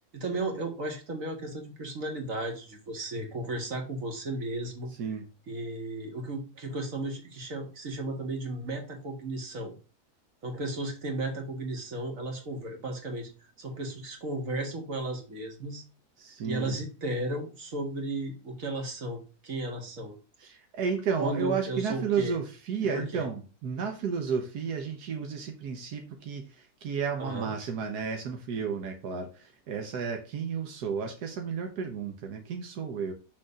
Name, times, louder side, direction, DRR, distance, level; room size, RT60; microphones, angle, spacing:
voice 1, 0.1-4.9 5.5-9.7 10.4-13.3 13.6-15.8 16.4-20.2 21.2-22.4 22.9-23.2 27.2-27.5, right 2 dB, 55° right, 2.3 m, -34 dB
voice 2, 4.9-5.3 16.2-16.8 20.4-33.1, right 6 dB, 85° right, 1.5 m, -32 dB
6.4 x 4.2 x 4.9 m
omnidirectional pair, 1.7 m